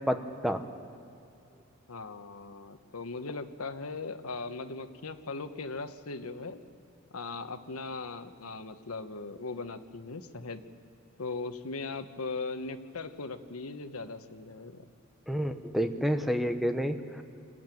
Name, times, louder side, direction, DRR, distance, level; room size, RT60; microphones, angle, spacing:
voice 1, 0.1-0.6 15.3-17.2, equal, ahead, 7 dB, 0.9 m, -29 dB
voice 2, 1.9-6.6 7.1-10.6 11.2-14.9, left 3 dB, 90° left, 9 dB, 1.1 m, -39 dB
27.0 x 13.5 x 9.2 m, 2.6 s
head